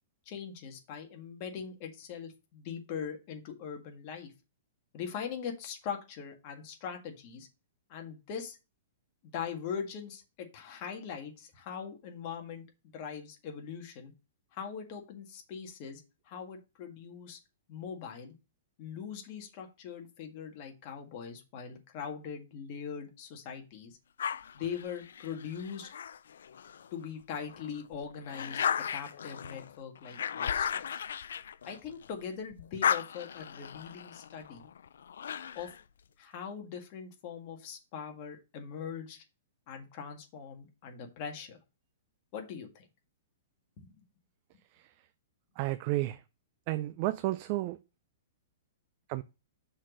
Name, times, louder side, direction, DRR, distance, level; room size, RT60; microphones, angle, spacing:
voice 1, 0.3-4.3 4.9-7.5 7.9-8.6 9.2-14.1 14.5-17.4 17.7-18.4 18.8-24.0 24.5-25.9 26.9-31.0 31.6-34.7 35.6-35.7 36.2-39.2 39.7-41.6 42.3-42.9 43.8-43.9, left 7 dB, 40° left, 1.8 m, -41 dB
sound 1, 24.2-26.9 27.4-32.2 32.5-35.8, left 8 dB, 80° left, 0.4 m, -36 dB
voice 2, 45.6-46.2 46.7-47.8 49.1-49.2, right 17 dB, 40° right, 0.4 m, -31 dB
6.1 x 4.2 x 6.3 m
hypercardioid pair, 150°, 0 cm